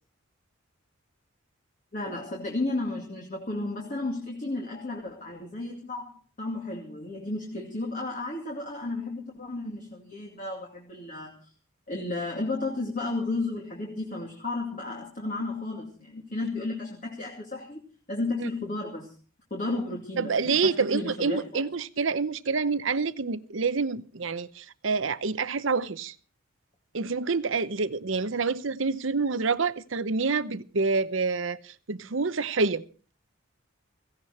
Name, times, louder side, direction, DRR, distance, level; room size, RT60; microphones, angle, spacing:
voice 1, 1.9-6.1 6.4-11.4 11.9-17.8 18.1-19.1 19.5-21.6, left 2 dB, 40° left, 2.5 m, -33 dB
voice 2, 20.2-26.1 26.9-32.8, right 4 dB, 70° right, 0.8 m, -27 dB
17.0 x 16.5 x 4.3 m
head